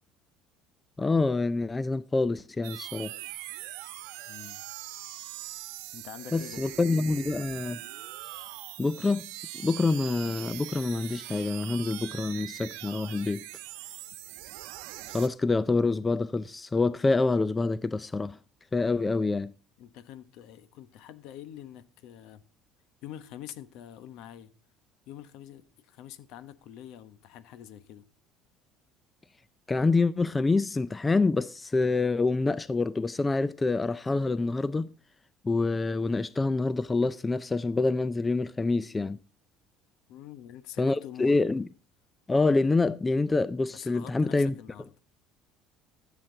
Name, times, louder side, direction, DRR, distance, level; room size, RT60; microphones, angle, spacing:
voice 1, 1.0-3.1 6.3-7.8 8.8-13.4 15.1-18.4 18.7-19.5 29.7-34.9 35.4-39.2 40.8-41.7 42.3-44.5, left 3 dB, 15° left, 0.4 m, -26 dB
sound 1, 2.6-15.3, right 16 dB, 90° right, 1.1 m, -42 dB
voice 2, 4.3-4.6 5.9-6.6 19.8-22.4 23.0-24.5 25.1-28.0 40.1-41.4 43.7-44.8, left 11 dB, 70° left, 1.1 m, -45 dB
14.5 x 7.5 x 3.8 m
cardioid pair, 130°, 0 cm